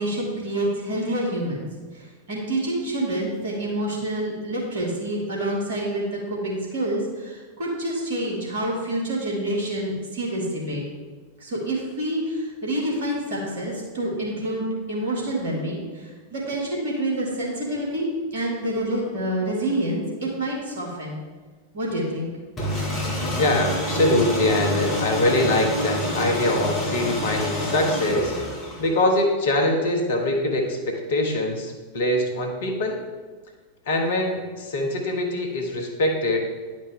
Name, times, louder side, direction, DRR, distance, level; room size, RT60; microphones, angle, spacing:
voice 1, 0.0-1.7 1.9-10.8 11.4-18.1 18.3-21.2 21.7-22.3, right 1 dB, 60° right, -3 dB, 2.2 m, -27 dB
sound 1, 22.6-29.1, equal, 20° left, 2.1 m, -27 dB
voice 2, 23.4-28.3 28.8-33.0 33.9-36.4, left 1 dB, 60° left, 2 dB, 1.3 m, -23 dB
10.0 x 5.1 x 3.7 m, 1.4 s
figure-of-eight pair, 90°, 0 cm